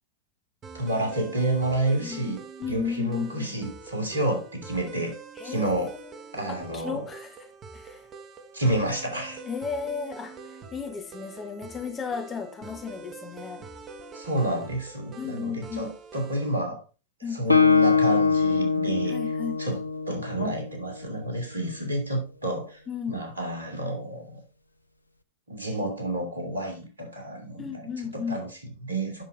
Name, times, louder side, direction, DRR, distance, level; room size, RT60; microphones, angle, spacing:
sound 1, 0.6-16.7, right 4 dB, 30° right, 1.2 m, -45 dB
voice 1, 0.7-2.4 2.7-5.2 5.4-5.9 6.3-7.0 8.5-9.4 14.1-16.8 17.2-19.8 20.1-22.8 23.1-24.4 25.5-29.2, right 1 dB, 80° right, 2.9 m, -30 dB
voice 2, 2.0-3.5 5.4-6.0 6.5-7.3 7.7-8.0 9.4-10.3 10.7-13.7 15.2-15.8 17.2-17.6 19.1-19.8 22.9-23.2 27.6-28.4, left 6 dB, 20° left, 1.3 m, -34 dB
Guitar, 17.5-21.2, left 5 dB, 85° left, 0.6 m, -23 dB
8.0 x 6.6 x 3.9 m
figure-of-eight pair, 90°, 0 cm